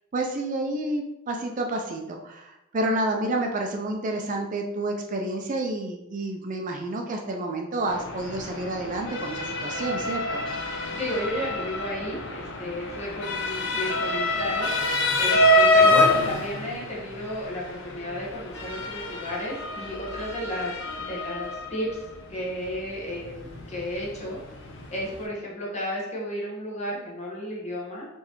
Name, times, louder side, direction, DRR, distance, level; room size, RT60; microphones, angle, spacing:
voice 1, 0.1-10.4, right 2 dB, 40° right, 3 dB, 0.4 m, -29 dB
Motor vehicle (road) / Siren, 7.9-25.3, left 1 dB, 60° left, 0.7 m, -27 dB
voice 2, 10.9-14.7 15.2-20.7 21.1-24.4 24.9-28.1, equal, 30° left, -4 dB, 1.2 m, -33 dB
4.3 x 3.2 x 3.0 m, 0.90 s
head